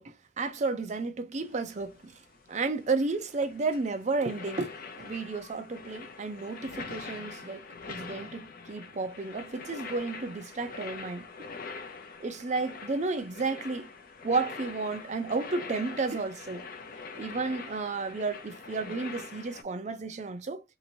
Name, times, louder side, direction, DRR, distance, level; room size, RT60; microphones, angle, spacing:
voice 1, 0.0-2.1 2.5-11.2 12.2-13.9 14.2-16.7 17.2-20.6, right 3 dB, 40° right, 0.6 m, -32 dB
sound 1, 1.4-19.6, left 4 dB, 55° left, 0.5 m, -44 dB
2.8 x 2.6 x 2.7 m
head